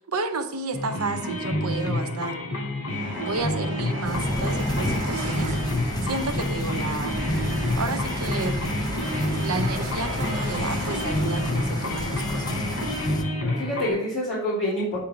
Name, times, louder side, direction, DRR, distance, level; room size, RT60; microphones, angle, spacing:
voice 1, 0.0-2.4 3.2-5.5 6.1-7.2 7.8-8.6 9.4-12.6, right 3 dB, 70° right, 7 dB, 0.9 m, -31 dB
sound 1, 0.7-13.9, left 1 dB, 70° left, 2.6 m, -29 dB
Train, 2.9-13.4, right 2 dB, 55° right, 1.7 m, -37 dB
sound 2, 4.0-13.2, left 1 dB, 20° left, 0.5 m, -31 dB
voice 2, 13.1-15.0, equal, 35° left, -12 dB, 3.2 m, -28 dB
8.6 x 3.6 x 6.8 m, 0.81 s
head